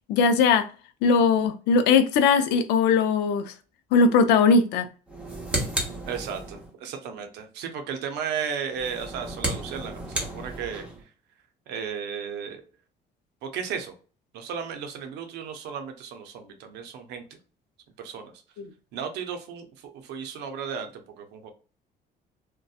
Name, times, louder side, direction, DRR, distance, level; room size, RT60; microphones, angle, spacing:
voice 1, 0.1-0.7 1.0-3.5 3.9-4.9 18.6-18.7, left 5 dB, 85° left, 0.4 m, -20 dB
sound 1, 5.1-6.7 8.7-11.0, right 1 dB, 5° right, 0.8 m, -32 dB
voice 2, 6.0-10.8 11.7-12.6 13.4-13.9 14.3-17.2 18.0-18.3 18.9-21.5, right 7 dB, 85° right, 0.6 m, -34 dB
2.6 x 2.2 x 2.3 m
cardioid pair, 110°, 17 cm